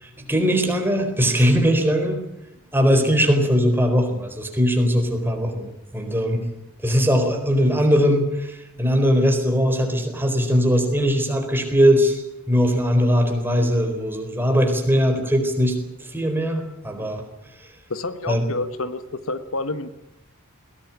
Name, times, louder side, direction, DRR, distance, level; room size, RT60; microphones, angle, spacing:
voice 1, 0.0-2.2 2.7-6.4 6.8-15.7 16.0-17.2 18.3-18.4, equal, 10° right, 4 dB, 4.2 m, -20 dB
voice 2, 17.9-19.9, left 2 dB, 65° left, 11 dB, 1.4 m, -28 dB
21.5 x 18.0 x 9.9 m, 0.91 s
head